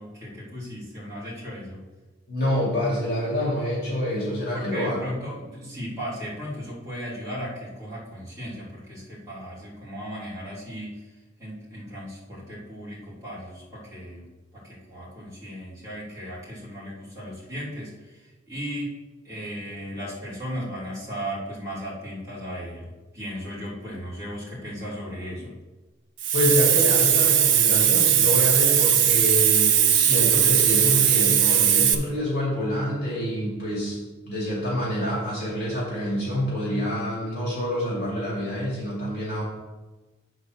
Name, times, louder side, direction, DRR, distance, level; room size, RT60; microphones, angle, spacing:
voice 1, 0.0-1.8 4.5-11.0 11.4-14.3 14.5-18.2 18.5-19.0 19.2-25.6, equal, 15° right, -8 dB, 2.7 m, -36 dB
voice 2, 2.3-5.1 26.3-34.0 34.3-39.4, left 1 dB, 50° left, -6 dB, 2.7 m, -27 dB
Hiss, 26.2-31.9, right 9 dB, 65° right, 0.7 m, -19 dB
8.6 x 4.0 x 6.4 m, 1.2 s
head